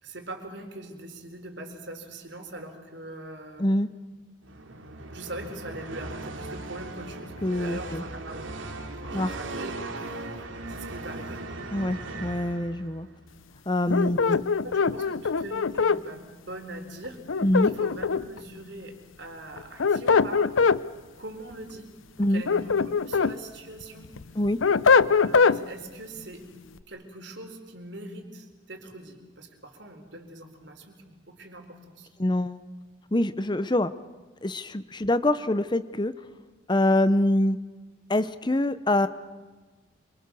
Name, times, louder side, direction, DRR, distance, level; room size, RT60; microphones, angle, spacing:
voice 1, 0.0-3.7 5.1-8.7 9.0-9.8 10.7-11.4 14.0-14.2 14.6-17.4 17.7-20.5 21.2-21.9 22.3-24.1 25.1-26.5 26.9-32.1, right 1 dB, 60° right, 5 dB, 4.2 m, -42 dB
sound 1, 4.4-13.1, right 2 dB, 80° right, 2.7 m, -38 dB
voice 2, 7.4-8.0 9.1-9.4 11.7-13.1 13.7-14.4 17.4-17.7 22.2-22.4 24.3-24.6 32.2-32.6 33.1-33.9 34.4-36.1 36.7-37.6 38.1-39.1, left 1 dB, 20° left, 13 dB, 0.7 m, -24 dB
sound 2, 13.9-16.0 17.3-18.4 19.6-20.8 22.2-23.3 23.8-25.6, left 5 dB, 85° left, 0.7 m, -22 dB
26.5 x 25.0 x 6.9 m, 1.3 s
head